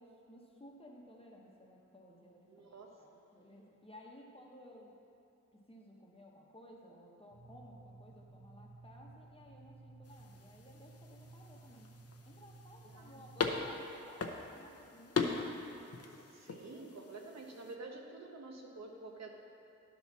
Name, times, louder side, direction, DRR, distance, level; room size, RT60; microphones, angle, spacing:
voice 1, 0.0-5.0 5.5-11.9 12.2-15.5, left 1 dB, 20° left, -1 dB, 1.0 m, -57 dB
voice 2, 2.5-3.2 12.8-13.2 16.1-19.3, right 3 dB, 65° right, 1 dB, 0.9 m, -49 dB
sound 1, 7.3-13.7, right 3 dB, 40° right, 0.7 m, -56 dB
sound 2, 10.0-17.8, left 5 dB, 55° left, 0.6 m, -41 dB
10.5 x 4.2 x 6.0 m, 2.9 s
wide cardioid pair, 120°, 29 cm